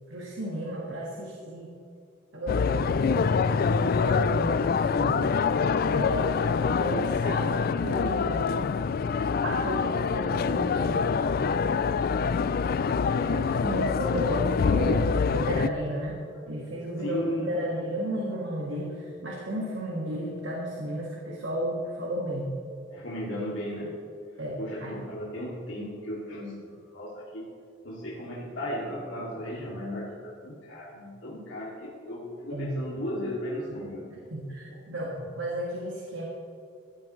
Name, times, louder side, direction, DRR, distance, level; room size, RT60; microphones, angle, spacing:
voice 1, 0.1-1.7 2.3-5.3 5.9-6.5 6.8-8.6 9.4-11.4 13.1-16.2 16.4-22.5 24.4-24.9 32.5-32.8 34.3-36.2, right 1 dB, 70° right, -3 dB, 1.9 m, -33 dB
sound 1, 2.5-15.7, left 5 dB, 50° left, 0.3 m, -25 dB
voice 2, 13.1-13.5 16.3-16.4 16.9-17.5 22.9-23.9 24.6-26.7 26.9-27.5 27.8-34.1 34.7-34.8, equal, 85° left, -6 dB, 2.5 m, -35 dB
16.5 x 12.5 x 3.2 m, 2.4 s
head